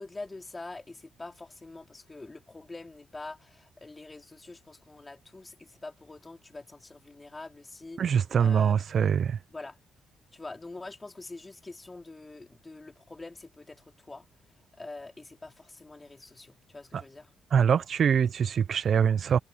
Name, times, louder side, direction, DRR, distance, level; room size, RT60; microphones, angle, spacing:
voice 1, 0.0-9.1 9.5-9.8 10.3-14.3 14.8-17.3, left 3 dB, 20° left, 4.3 m, -45 dB
voice 2, 8.0-9.4 16.9-17.0 17.5-19.4, right 7 dB, 55° right, 0.6 m, -24 dB
cardioid pair, 90°, 0 cm